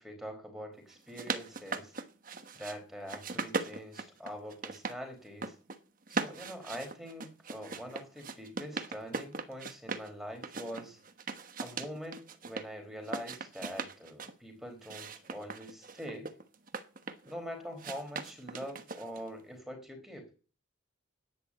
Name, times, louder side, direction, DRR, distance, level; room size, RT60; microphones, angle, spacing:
voice 1, 0.0-1.9 2.5-5.6 6.1-11.0 11.6-16.3 17.2-20.3, equal, ahead, 4 dB, 4.2 m, -44 dB
sound 1, 0.9-2.8 3.1-5.0 5.3-5.8 6.1-10.1 10.4-12.7 13.0-14.3 14.8-17.3 17.8-19.3, right 4 dB, 45° right, 1.2 m, -39 dB
11.0 x 10.0 x 8.5 m, 0.36 s
head